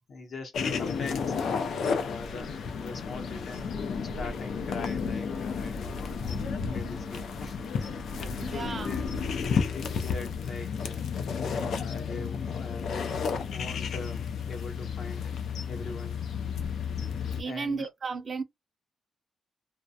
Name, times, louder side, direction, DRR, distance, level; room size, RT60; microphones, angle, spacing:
voice 1, 0.1-1.6 1.9-3.7 4.0-11.2 11.5-15.3 15.7-16.2 17.4-17.9, left 3 dB, 55° left, 0.8 m, -42 dB
sound 1, 0.5-17.4, left 6 dB, 75° left, 0.4 m, -32 dB
voice 2, 8.4-9.0 17.4-18.4, right 4 dB, 35° right, 0.4 m, -34 dB
2.3 x 2.1 x 2.7 m
wide cardioid pair, 150°, 0 cm